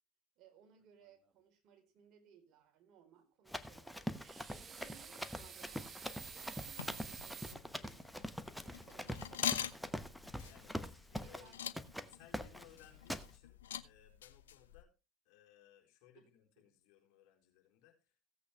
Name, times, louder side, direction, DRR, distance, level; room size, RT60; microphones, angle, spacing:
voice 1, 0.4-4.1 4.5-6.0 6.3-8.4 8.6-10.2 11.2-11.8 12.3-12.5 16.1-16.3 16.6-16.7, right 8 dB, 50° right, 5 dB, 4.0 m, -64 dB
Run, 3.5-11.5 11.8-12.1 12.3-12.7 13.1-13.3, equal, ahead, 1.0 m, -44 dB
sound 1, 4.2-7.5, right 7 dB, 35° right, 1.2 m, -50 dB
sound 2, 6.0-14.8, left 10 dB, 80° left, 0.7 m, -45 dB
voice 2, 10.4-11.6 11.9-14.9 15.2-18.2, left 12 dB, 60° left, 0 dB, 4.0 m, -63 dB
16.0 x 8.4 x 3.3 m, 0.29 s
hypercardioid pair, 80°, 0 cm